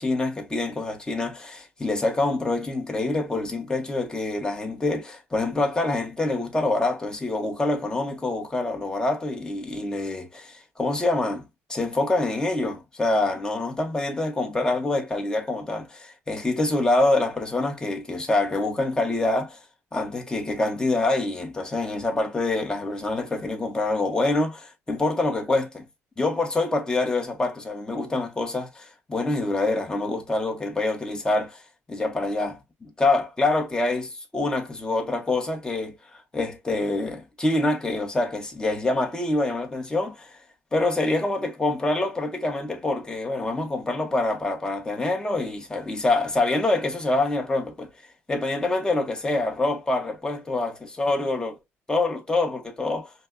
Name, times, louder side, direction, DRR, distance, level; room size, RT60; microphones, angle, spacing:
voice 1, 0.0-19.6 19.9-25.9 26.2-31.6 31.9-36.0 36.3-40.4 40.7-47.9 48.3-51.6 51.9-53.1, left 2 dB, 15° left, 1.4 m, -26 dB
5.3 x 2.4 x 2.2 m
cardioid pair, 95°, 5 cm